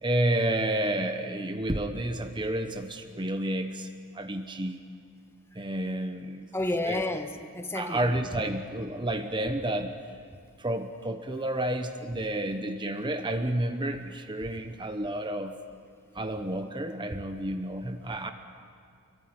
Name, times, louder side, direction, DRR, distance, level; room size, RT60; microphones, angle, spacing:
voice 1, 0.0-3.9 4.1-4.8 5.6-6.5 6.8-7.2 7.7-9.9 10.6-15.6 16.1-18.3, right 1 dB, 20° right, 7 dB, 1.0 m, -30 dB
voice 2, 6.5-8.0, left 2 dB, 10° left, 6 dB, 1.4 m, -31 dB
26.0 x 23.0 x 9.5 m, 2.3 s
head